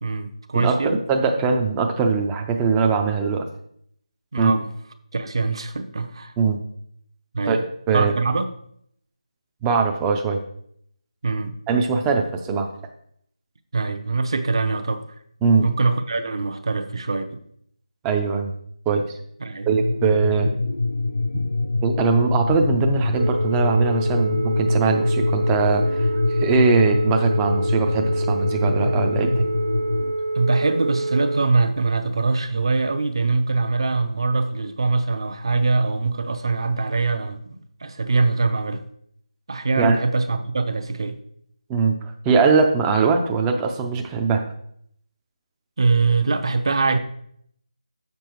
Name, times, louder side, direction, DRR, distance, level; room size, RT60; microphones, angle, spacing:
voice 1, 0.0-1.0 4.3-4.7 5.1-6.3 7.3-7.6 7.9-8.5 11.2-11.6 13.7-15.1 15.6-17.4 19.4-19.7 30.3-38.8 39.5-41.2 45.8-47.0, right 3 dB, 45° right, 8 dB, 0.8 m, -23 dB
voice 2, 0.5-3.5 4.4-4.5 6.4-6.6 7.5-8.1 9.6-10.4 11.7-12.7 15.4-15.6 18.0-18.5 18.9-19.2 19.7-20.5 21.8-29.5 39.8-40.0 41.7-42.0 42.2-44.4, right 5 dB, 10° right, 3 dB, 0.5 m, -21 dB
sound 1, 19.7-30.1, left 3 dB, 70° left, 0.7 m, -24 dB
Telephone, 23.1-31.5, right 2 dB, 90° right, 0.5 m, -27 dB
7.0 x 6.8 x 4.5 m, 0.68 s
figure-of-eight pair, 170°, 4 cm